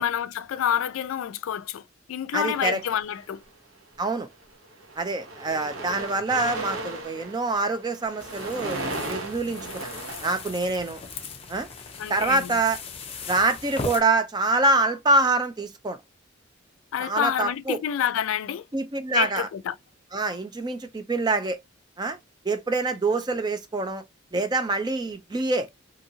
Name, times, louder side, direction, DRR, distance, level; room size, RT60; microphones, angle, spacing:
voice 1, 0.0-3.4 12.0-12.6 16.9-18.7 19.1-19.7, left 9 dB, 90° left, 0.3 m, -28 dB
voice 2, 2.3-2.8 4.0-4.3 5.0-9.9 10.2-11.0 11.5-11.7 12.1-12.8 13.3-16.0 17.0-17.8 18.7-19.5 20.1-21.6 22.0-22.2 22.4-24.0 24.3-25.7, right 2 dB, 20° right, 0.4 m, -25 dB
sound 1, 2.4-3.4 4.2-4.4 4.7-11.2, right 2 dB, 85° right, 0.9 m, -36 dB
sound 2, 8.2-14.0, left 4 dB, 30° left, 0.6 m, -39 dB
2.7 x 2.7 x 2.6 m
head